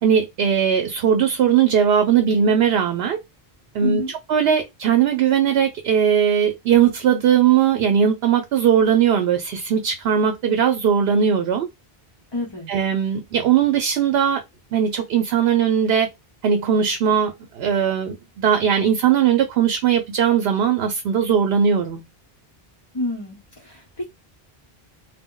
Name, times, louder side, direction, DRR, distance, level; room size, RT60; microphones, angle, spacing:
voice 1, 0.0-3.2 3.7-11.7 12.7-14.4 14.7-16.1 16.4-22.0, right 8 dB, 75° right, 0.8 m, -19 dB
voice 2, 3.8-4.1 12.3-12.7 22.9-24.1, left 1 dB, 30° left, 0.8 m, -29 dB
2.2 x 2.0 x 3.6 m
omnidirectional pair, 1.0 m